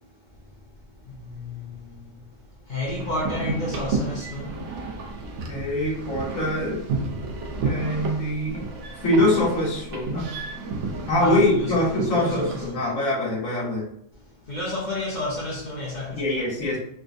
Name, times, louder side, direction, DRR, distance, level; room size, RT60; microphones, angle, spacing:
voice 1, 1.1-2.2 2.7-4.8 5.1-5.2 7.1-7.2 7.5-7.7 11.1-12.8 14.4-16.5, left 1 dB, 55° left, 0.5 m, -31 dB
sound 1, 2.9-12.7, right 3 dB, 70° right, 0.8 m, -32 dB
voice 2, 5.5-6.8 7.6-8.6 9.0-10.2 11.1-13.8 16.1-16.8, left 1 dB, 80° left, 1.3 m, -23 dB
3.3 x 2.4 x 2.4 m
omnidirectional pair, 1.4 m